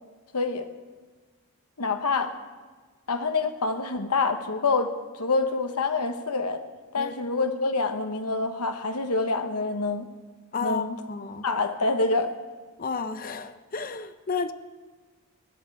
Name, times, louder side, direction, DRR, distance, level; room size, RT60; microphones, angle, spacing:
voice 1, 0.3-0.7 1.8-2.3 3.1-6.6 6.9-10.1 10.6-11.0 11.4-12.3, left 3 dB, 85° left, 7 dB, 1.1 m, -26 dB
voice 2, 10.5-11.4 12.8-14.5, left 5 dB, 40° left, 11 dB, 0.7 m, -32 dB
19.0 x 12.0 x 4.7 m, 1.4 s
head